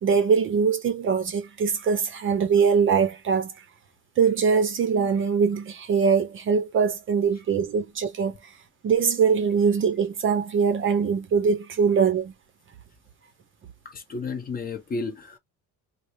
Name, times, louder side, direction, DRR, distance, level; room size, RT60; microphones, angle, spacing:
voice 1, 0.0-3.5 4.2-8.4 8.8-12.3, right 6 dB, 30° right, 0.6 m, -22 dB
voice 2, 13.8-15.4, left 4 dB, 25° left, 0.7 m, -32 dB
4.8 x 2.0 x 2.6 m
cardioid pair, 170°, 38 cm